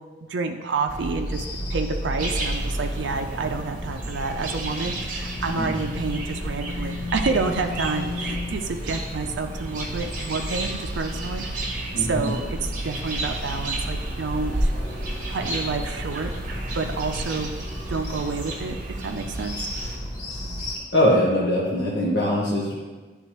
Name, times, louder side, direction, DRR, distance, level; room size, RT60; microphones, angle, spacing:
voice 1, 0.3-1.4 1.7-14.7 15.3-16.3 16.7-17.5 17.9-19.7, right 4 dB, 80° right, 4 dB, 0.4 m, -29 dB
sound 1, 0.9-20.8, equal, 90° left, 1.7 m, -33 dB
sound 2, 2.2-20.0, right 1 dB, 45° right, 1.0 m, -33 dB
voice 2, 11.9-12.3 20.9-22.8, left 1 dB, 65° left, -7 dB, 1.1 m, -22 dB
10.0 x 3.6 x 3.0 m, 1.3 s
head